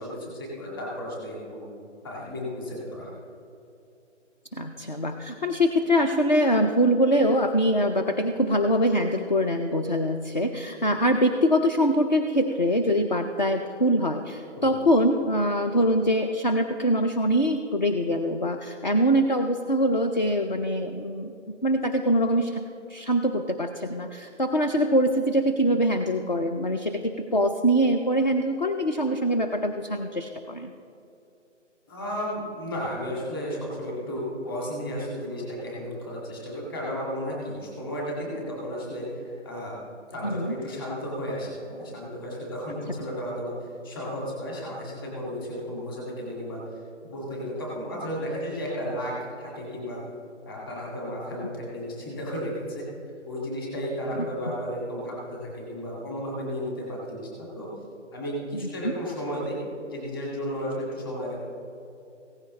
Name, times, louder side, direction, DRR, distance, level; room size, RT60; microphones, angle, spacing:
voice 1, 0.0-1.7 2.0-3.1 14.6-14.8 31.9-39.8 40.1-50.0 50.5-52.8 53.3-57.7 58.1-59.6 59.9-61.3, equal, 20° left, -4 dB, 2.1 m, -33 dB
voice 2, 4.5-21.3 21.6-22.6 22.9-30.7 40.2-40.5 54.2-54.3 58.8-58.9, equal, 40° left, 5 dB, 0.5 m, -23 dB
16.0 x 15.0 x 3.2 m, 2.7 s
figure-of-eight pair, 170°, 37 cm